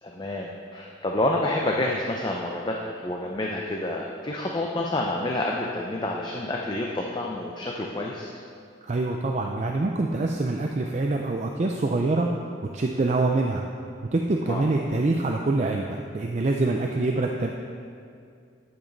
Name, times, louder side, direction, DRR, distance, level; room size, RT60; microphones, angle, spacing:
voice 1, 0.0-8.3 14.5-14.7, left 1 dB, 25° left, -1 dB, 0.6 m, -28 dB
voice 2, 8.9-12.3 12.7-13.6 14.1-17.5, right 2 dB, 35° right, 1 dB, 0.4 m, -25 dB
10.5 x 7.1 x 4.0 m, 2.3 s
head